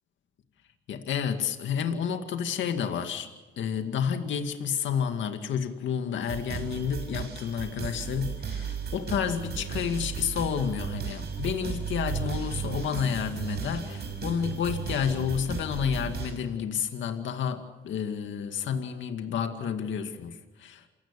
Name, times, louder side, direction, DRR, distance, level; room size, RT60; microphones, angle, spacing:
voice 1, 0.9-3.3 3.6-20.8, left 7 dB, 70° left, 7 dB, 2.2 m, -30 dB
sound 1, 6.2-16.3, right 6 dB, 55° right, 6.6 m, -35 dB
28.0 x 17.0 x 7.0 m, 1.2 s
cardioid pair, 90°, 20 cm